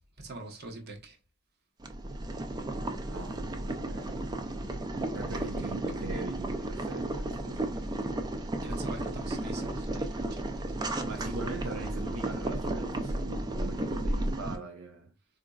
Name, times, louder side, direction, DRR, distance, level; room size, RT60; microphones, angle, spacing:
voice 1, 0.2-1.2 5.6-6.0 8.6-10.6, right 2 dB, 55° right, 0.9 m, -44 dB
Boiling, 1.8-14.6, right 1 dB, 20° right, 0.4 m, -33 dB
voice 2, 3.1-4.3 5.1-7.9 11.1-15.1, right 3 dB, 80° right, 0.6 m, -41 dB
4.0 x 2.6 x 2.3 m
head